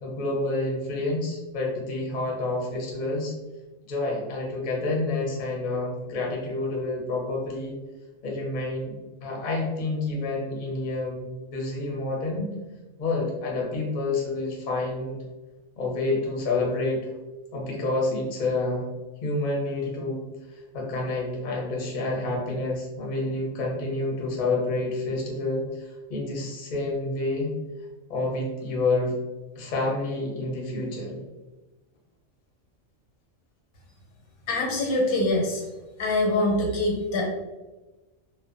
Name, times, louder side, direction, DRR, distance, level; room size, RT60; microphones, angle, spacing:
voice 1, 0.0-3.3 3.9-7.8 8.2-8.9 9.2-12.5 13.0-15.2 15.8-17.0 17.5-18.9 19.2-20.2 20.7-27.5 28.1-29.1 29.6-31.2, left 2 dB, 50° left, -2 dB, 0.6 m, -28 dB
voice 2, 34.5-35.6 36.0-37.3, left 2 dB, 90° left, -1 dB, 1.2 m, -24 dB
2.5 x 2.1 x 2.4 m, 1.1 s
omnidirectional pair, 1.5 m